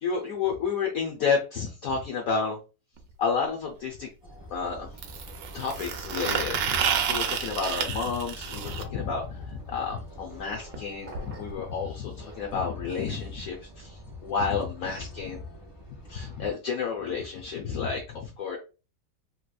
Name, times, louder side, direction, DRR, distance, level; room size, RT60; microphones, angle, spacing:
voice 1, 0.0-2.6 3.2-4.1 4.5-5.0 5.5-15.4 16.1-18.6, left 5 dB, 70° left, 1 dB, 0.8 m, -31 dB
sound 1, 3.0-3.1 5.0-8.8 10.7-10.8 11.1-11.2 11.5-11.6 12.5-12.6, right 8 dB, 80° right, 1.3 m, -30 dB
sound 2, 4.2-16.5, equal, 25° left, 0.5 m, -46 dB
sound 3, 11.1-11.7, right 3 dB, 60° right, 0.7 m, -45 dB
3.3 x 3.1 x 2.2 m, 0.32 s
omnidirectional pair, 2.1 m